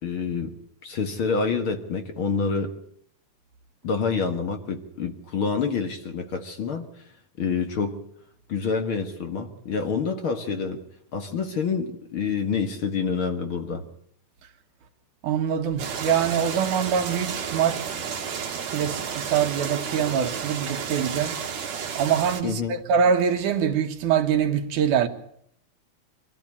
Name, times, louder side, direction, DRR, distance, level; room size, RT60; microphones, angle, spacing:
voice 1, 0.0-0.5 0.8-2.7 3.8-6.8 7.4-8.0 8.5-10.8 11.1-13.8 22.4-22.8, left 5 dB, 50° left, 2.0 m, -27 dB
voice 2, 15.2-18.0 18.7-21.4 21.9-25.1, right 7 dB, 85° right, 2.8 m, -24 dB
sound 1, 15.8-22.4, right 7 dB, 65° right, 3.0 m, -32 dB
23.5 x 14.0 x 8.5 m
omnidirectional pair, 3.4 m